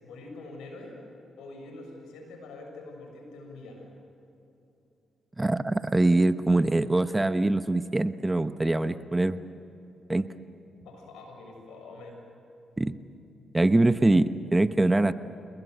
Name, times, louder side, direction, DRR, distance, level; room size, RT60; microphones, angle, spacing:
voice 1, 0.0-1.0 1.4-3.9 10.8-12.2, left 2 dB, 85° left, 2 dB, 6.8 m, -44 dB
voice 2, 5.4-9.4 10.1-10.3 12.8-13.0 13.5-15.1, right 2 dB, 20° right, 11 dB, 1.0 m, -23 dB
27.0 x 21.0 x 8.2 m, 2.8 s
supercardioid pair, 55°, 0 cm